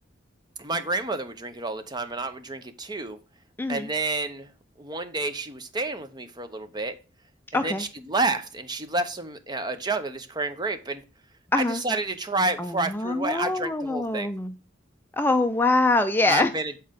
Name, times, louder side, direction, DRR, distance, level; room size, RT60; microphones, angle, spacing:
voice 1, 0.6-3.2 3.7-4.5 4.8-6.9 7.5-11.0 11.6-14.3 16.3-16.7, right 2 dB, 25° right, 0.8 m, -29 dB
voice 2, 7.5-7.8 11.5-11.8 12.6-14.5 15.1-16.5, left 2 dB, 10° left, 0.4 m, -24 dB
7.5 x 4.3 x 5.1 m
head